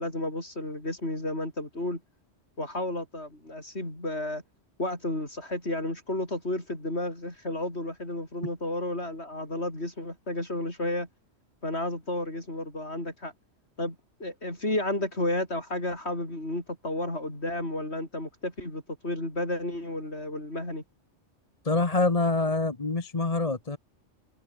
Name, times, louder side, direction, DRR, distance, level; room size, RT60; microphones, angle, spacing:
voice 1, 0.0-2.0 2.6-4.4 4.8-11.1 11.6-13.3 13.8-20.8, left 1 dB, 60° left, 7.7 m, -32 dB
voice 2, 21.6-23.8, left 3 dB, 30° left, 1.4 m, -25 dB
omnidirectional pair, 1.3 m